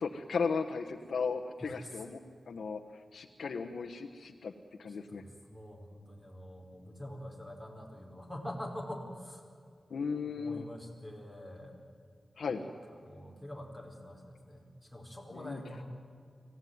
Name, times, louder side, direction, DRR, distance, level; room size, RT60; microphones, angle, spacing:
voice 1, 0.0-2.2 2.5-2.8 3.1-4.5 4.8-5.2 9.9-10.6 12.4-12.6 15.3-15.6, left 5 dB, 90° left, 3 dB, 1.2 m, -35 dB
voice 2, 1.6-2.0 4.8-9.4 10.4-11.8 12.5-15.8, left 1 dB, 5° right, 1 dB, 4.9 m, -45 dB
25.0 x 16.5 x 9.4 m, 2.3 s
wide cardioid pair, 85°, 0 cm